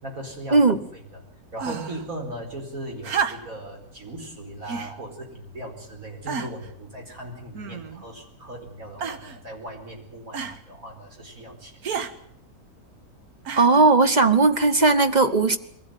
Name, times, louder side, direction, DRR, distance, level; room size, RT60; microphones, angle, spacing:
voice 1, 0.0-0.8 1.1-1.2 1.5-11.7, right 1 dB, 65° right, 2 dB, 5.4 m, -38 dB
sound 1, 1.6-2.1 3.0-3.7 4.7-5.0 5.7-5.8 6.3-6.7 7.5-8.1 9.0-9.4 10.3-10.6 11.8-12.1 13.4-13.9 14.9-15.0, right 6 dB, 80° right, 1.8 m, -31 dB
voice 2, 13.6-15.6, right 3 dB, 30° right, 9 dB, 1.2 m, -17 dB
22.5 x 16.5 x 9.2 m, 0.72 s
omnidirectional pair, 1.6 m